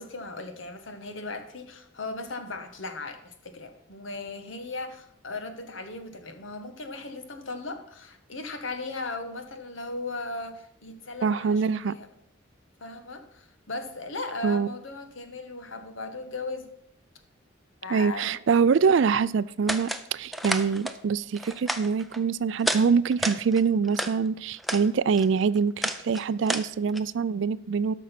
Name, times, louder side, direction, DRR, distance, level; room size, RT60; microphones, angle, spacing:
voice 1, 0.0-12.1 12.8-16.7 17.8-18.3, left 3 dB, 75° left, 7 dB, 1.4 m, -37 dB
voice 2, 11.2-12.0 14.4-14.7 17.9-27.9, right 5 dB, 65° right, 18 dB, 0.4 m, -24 dB
sound 1, 19.7-20.0 20.3-21.0 21.3-22.2 22.6-22.8 23.1-24.1 24.5-24.9 25.1-27.0, right 1 dB, ahead, 0.5 m, -31 dB
12.5 x 6.2 x 5.9 m, 0.72 s
head